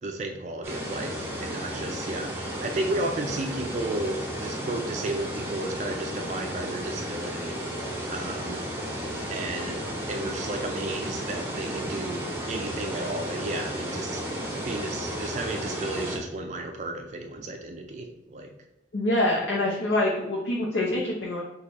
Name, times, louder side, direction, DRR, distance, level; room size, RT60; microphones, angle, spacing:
voice 1, 0.0-8.6 9.3-9.8 10.1-18.5, right 2 dB, 40° right, 4 dB, 0.3 m, -33 dB
sound 1, 0.6-16.2, equal, 15° right, 0.7 m, -33 dB
voice 2, 18.9-21.4, left 1 dB, 85° left, -3 dB, 0.7 m, -25 dB
4.0 x 2.3 x 4.6 m, 0.97 s
head